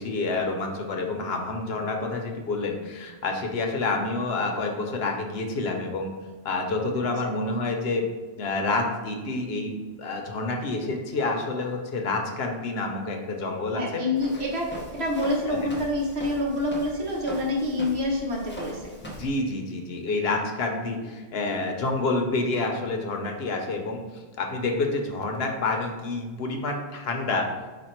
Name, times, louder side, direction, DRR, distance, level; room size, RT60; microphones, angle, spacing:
voice 1, 0.0-6.1 6.4-14.0 15.5-15.6 19.0-27.5, left 3 dB, 70° left, 3 dB, 0.9 m, -28 dB
voice 2, 6.9-7.3 13.7-18.9 20.9-21.1, left 1 dB, 70° right, -3 dB, 1.3 m, -27 dB
Walk footsteps, 14.2-19.4, equal, 15° left, 0.5 m, -41 dB
5.1 x 2.3 x 4.3 m, 1.3 s
omnidirectional pair, 1.1 m